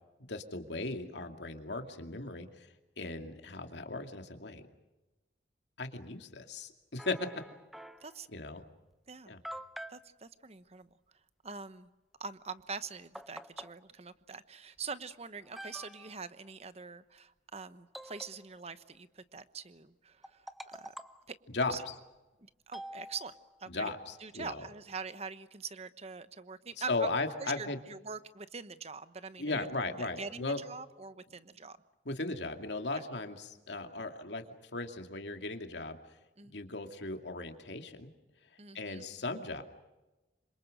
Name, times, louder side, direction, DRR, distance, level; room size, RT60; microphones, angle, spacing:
voice 1, 0.3-2.7 3.0-4.6 5.8-7.3 8.3-8.6 9.3-9.4 21.5-22.0 23.7-24.7 26.9-27.8 29.4-30.6 32.0-34.4 34.7-36.0 36.5-38.1 38.7-39.6, left 3 dB, 70° left, 5 dB, 2.5 m, -37 dB
sound 1, 7.0-8.2 8.9-9.0 9.4-10.0 12.6-12.7 13.1-13.7 14.8-14.9 15.4-16.2 17.9-18.8 20.2-21.3 22.7-23.6, equal, ahead, 0.8 m, -47 dB
voice 2, 9.9-10.9 11.4-11.9 12.2-20.9 21.3-21.4 21.7-21.8 22.4-23.3 23.6-23.9 24.2-27.1 27.4-29.7 30.0-31.8 36.4-36.5 38.6-39.1, right 5 dB, 35° right, 12 dB, 1.1 m, -44 dB
27.0 x 26.0 x 6.6 m, 1.1 s
head